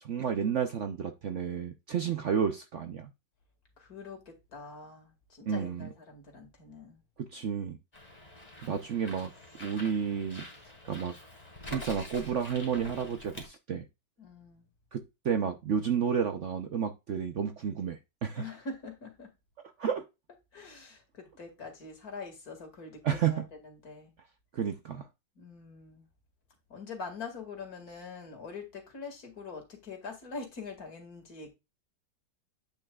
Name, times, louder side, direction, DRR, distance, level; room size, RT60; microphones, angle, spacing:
voice 1, 0.0-3.1 5.5-5.9 7.2-7.8 8.6-9.3 9.6-10.4 10.8-11.1 11.6-13.9 14.9-18.4 19.8-20.0 23.0-23.4 24.5-25.1, right 7 dB, 55° right, 0.9 m, -31 dB
voice 2, 3.8-7.0 14.2-14.7 18.4-19.3 20.5-24.1 25.4-26.1 26.7-31.5, left 4 dB, 60° left, 2.5 m, -44 dB
Bird, 7.9-13.5, left 1 dB, 20° left, 2.4 m, -46 dB
8.7 x 6.0 x 2.3 m
omnidirectional pair, 1.8 m